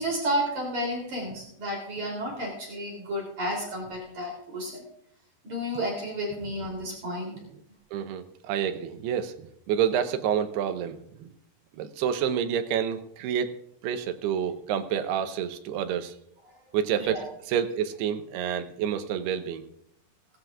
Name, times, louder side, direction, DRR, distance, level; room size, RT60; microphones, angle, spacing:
voice 1, 0.0-4.8 5.4-7.3 17.0-17.2, equal, 50° right, -2 dB, 4.3 m, -31 dB
voice 2, 7.9-11.3 11.8-13.5 13.8-16.1 16.7-17.2 17.5-19.6, right 8 dB, 85° right, 9 dB, 2.9 m, -28 dB
17.5 x 17.0 x 2.4 m, 0.72 s
omnidirectional pair, 4.6 m